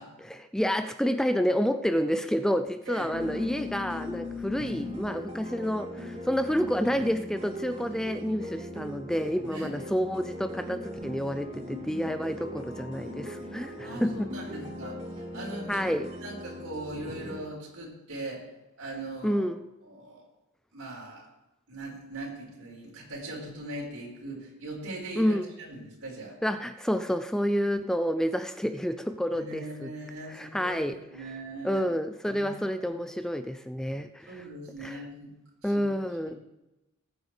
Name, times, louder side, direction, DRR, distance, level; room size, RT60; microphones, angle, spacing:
voice 1, 0.2-14.3 15.7-16.1 19.2-19.6 25.2-25.5 26.4-29.9 30.3-31.0 31.6-34.4 34.8-35.0 35.6-36.4, equal, 5° left, 9 dB, 0.4 m, -29 dB
sound 1, 3.1-17.4, left 1 dB, 30° right, 3.4 m, -39 dB
voice 2, 13.8-15.9 16.2-18.5 18.8-19.4 19.8-20.2 20.7-21.3 21.7-26.4 29.3-31.8 32.3-32.5 32.7-33.0 34.3-35.3 35.6-35.8, right 2 dB, 80° right, -3 dB, 4.9 m, -40 dB
20.0 x 9.5 x 3.4 m, 0.98 s
head